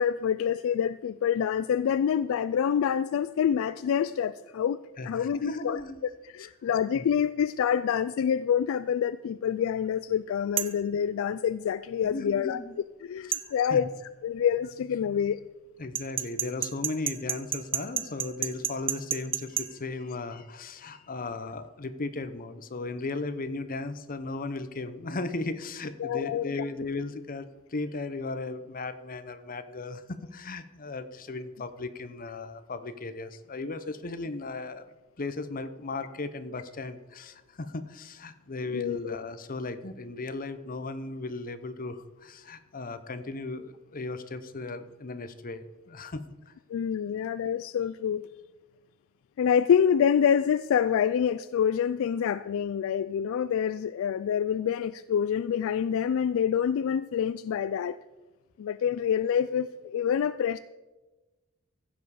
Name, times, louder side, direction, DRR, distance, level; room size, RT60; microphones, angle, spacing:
voice 1, 0.0-4.8 5.0-5.8 6.3-12.6 13.0-13.9 14.2-15.4 26.0-26.6 38.7-39.1 46.7-48.3 49.4-58.0 58.6-60.6, left 8 dB, 65° left, 15 dB, 0.3 m, -27 dB
voice 2, 5.0-6.0 6.6-7.0 12.0-12.7 13.3-13.4 13.7-13.9 15.8-34.9 35.2-46.5, left 3 dB, 40° left, 11 dB, 0.8 m, -36 dB
sound 1, 10.6-10.8 13.3-13.5 15.9-19.7, right 8 dB, 25° right, 0.6 m, -30 dB
15.5 x 7.1 x 4.9 m, 1.1 s
head